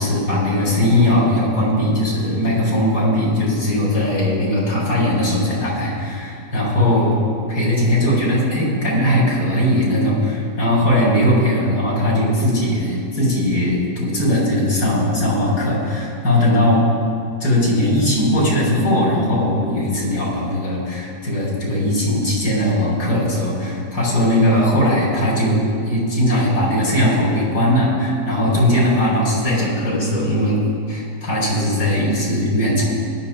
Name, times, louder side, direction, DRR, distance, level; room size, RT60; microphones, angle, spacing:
voice 1, 0.0-7.1 7.5-16.8 17.4-30.6 30.9-32.8, left 1 dB, 90° left, -6 dB, 4.4 m, -19 dB
21.0 x 11.5 x 2.3 m, 2.3 s
omnidirectional pair, 1.7 m